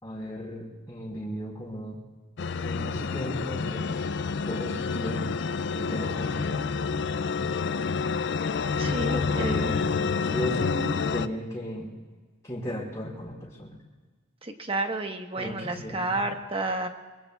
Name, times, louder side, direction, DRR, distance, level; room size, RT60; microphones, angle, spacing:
voice 1, 0.0-2.0 2.6-3.9 4.4-5.2 5.7-6.6 7.4-7.5 9.1-10.8 11.1-11.9 12.4-13.8 15.4-16.0, equal, 15° left, -7 dB, 4.4 m, -35 dB
sound 1, 2.4-11.3, left 5 dB, 60° left, 0.4 m, -28 dB
voice 2, 8.8-9.7 14.4-16.9, right 2 dB, 30° right, 4 dB, 1.3 m, -31 dB
23.5 x 23.5 x 2.4 m, 1.3 s
head